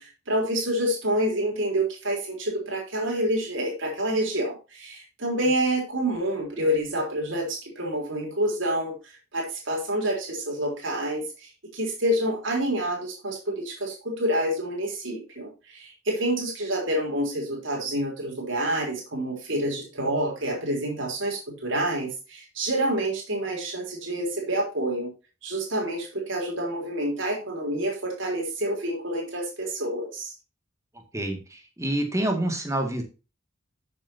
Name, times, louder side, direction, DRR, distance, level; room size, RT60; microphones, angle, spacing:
voice 1, 0.0-25.1 25.4-30.3, right 1 dB, 70° right, -1 dB, 3.7 m, -28 dB
voice 2, 31.1-33.0, right 1 dB, 15° right, 3 dB, 2.1 m, -27 dB
11.5 x 7.6 x 2.8 m, 0.31 s
head